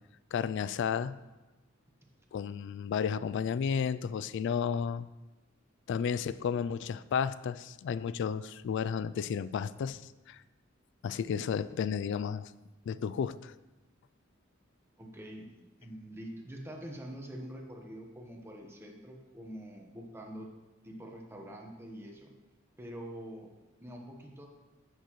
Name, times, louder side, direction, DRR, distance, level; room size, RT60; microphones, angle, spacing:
voice 1, 0.3-1.2 2.3-5.1 5.9-10.0 10.3-10.4 11.0-12.5 12.9-13.5, left 7 dB, 60° left, 16 dB, 0.3 m, -32 dB
voice 2, 15.0-20.5 20.8-22.3 22.8-23.5 23.8-24.5, equal, 10° right, 1 dB, 1.2 m, -45 dB
10.0 x 7.9 x 3.1 m, 1.1 s
head